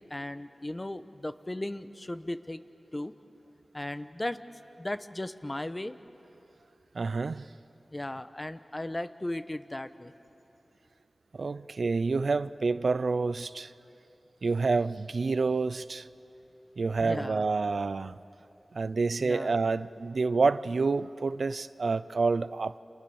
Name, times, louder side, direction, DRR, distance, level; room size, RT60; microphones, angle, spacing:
voice 1, 0.0-2.6 2.9-3.1 3.7-4.4 4.8-5.9 7.9-10.1 17.0-17.5 19.2-19.5, left 1 dB, 25° left, 1.0 m, -36 dB
voice 2, 6.9-7.5 11.3-13.7 14.4-16.0 16.8-18.1 18.7-22.7, right 4 dB, 75° right, 0.5 m, -28 dB
29.5 x 27.5 x 7.1 m
wide cardioid pair, 70°, 0 cm